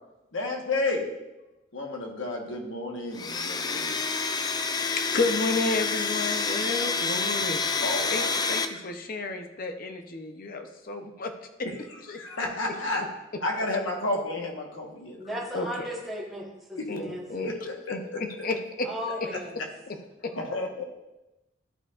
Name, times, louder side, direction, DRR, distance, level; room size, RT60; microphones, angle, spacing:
voice 1, 0.3-1.1 1.7-3.9 7.8-8.3 11.6-11.7 12.1-13.0 13.4-15.4 16.8-16.9 17.4-17.7 19.3-19.4 20.4-20.8, left 2 dB, 75° left, 0 dB, 1.2 m, -31 dB
Domestic sounds home sounds, 3.1-8.7, left 4 dB, 20° left, 0.3 m, -28 dB
voice 2, 4.7-7.8 8.1-11.3 12.1-12.2 15.5-15.9 16.9-17.5 17.9-18.9 20.2-20.3, left 3 dB, 45° left, 6 dB, 0.7 m, -32 dB
voice 3, 15.2-17.5 18.8-19.6, equal, ahead, -6 dB, 1.2 m, -36 dB
12.5 x 4.6 x 2.4 m, 0.99 s
head